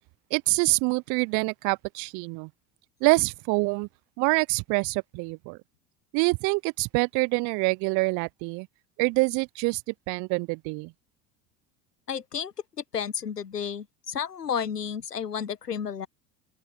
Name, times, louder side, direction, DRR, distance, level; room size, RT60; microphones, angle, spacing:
voice 1, 0.3-2.5 3.0-3.9 4.2-5.6 6.1-8.7 9.0-9.8 10.1-10.9, right 30 dB, 45° right, 0.5 m, -25 dB
voice 2, 12.1-12.5 12.9-16.1, left 7 dB, 90° left, 1.2 m, -32 dB
open air
figure-of-eight pair, 70°, 46 cm